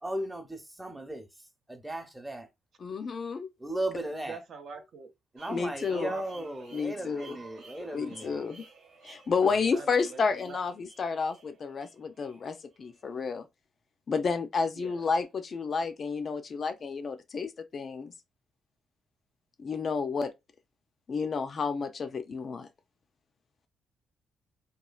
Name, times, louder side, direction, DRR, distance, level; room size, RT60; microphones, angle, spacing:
voice 1, 0.0-1.3 1.7-2.5 3.6-4.4 5.3-8.4, right 1 dB, 10° right, 0.8 m, -36 dB
voice 2, 2.8-3.5 5.5-6.1 6.7-7.4 7.9-8.7 9.0-13.5 14.1-18.1 19.6-20.3 21.1-22.7, left 5 dB, 45° left, 0.4 m, -31 dB
voice 3, 4.2-5.1 5.9-7.2 9.7-10.6 14.8-15.1, right 5 dB, 65° right, 0.6 m, -45 dB
sound 1, 5.4-13.2, right 4 dB, 85° right, 0.9 m, -54 dB
3.0 x 2.3 x 2.3 m
cardioid pair, 90°, 0 cm